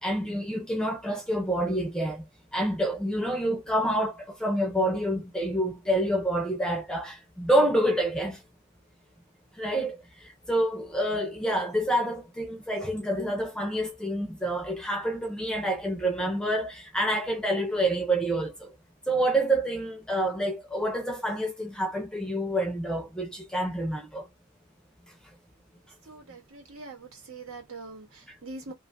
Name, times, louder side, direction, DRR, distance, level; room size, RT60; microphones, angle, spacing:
voice 1, 0.0-2.3 2.5-8.4 9.6-18.7 19.1-24.3, right 1 dB, 5° left, 0.6 m, -28 dB
voice 2, 26.1-28.7, right 3 dB, 70° right, 1.1 m, -43 dB
2.6 x 2.4 x 2.6 m
head